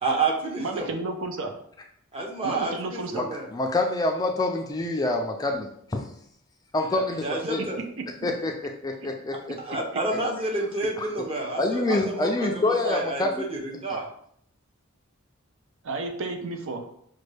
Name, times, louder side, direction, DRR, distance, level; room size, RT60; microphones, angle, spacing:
voice 1, 0.0-0.9 2.1-3.5 6.9-7.8 9.3-14.1, right 2 dB, 25° right, -1 dB, 0.8 m, -30 dB
voice 2, 0.6-1.5 2.4-3.2 15.8-16.8, right 2 dB, 65° right, 4 dB, 0.5 m, -31 dB
voice 3, 3.1-6.1 6.7-7.6 8.2-9.6 11.0-11.1 11.6-13.5 13.9-14.0, left 2 dB, 15° left, 3 dB, 0.3 m, -27 dB
5.1 x 2.2 x 3.2 m, 0.67 s
head